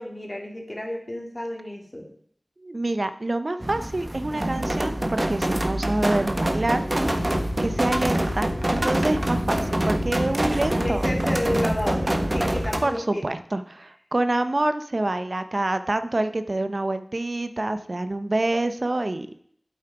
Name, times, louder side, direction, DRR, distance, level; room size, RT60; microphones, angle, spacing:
voice 1, 0.0-2.1 10.5-13.2, left 1 dB, 35° left, 1 dB, 2.5 m, -31 dB
voice 2, 2.6-6.8 7.6-11.1 12.8-19.3, right 2 dB, 65° right, 10 dB, 0.6 m, -26 dB
sound 1, 3.6-12.8, right 1 dB, 40° right, 1.2 m, -25 dB
sound 2, 6.7-12.9, left 2 dB, 90° left, 1.0 m, -35 dB
8.5 x 8.1 x 4.8 m, 0.63 s
wide cardioid pair, 45°, 0 cm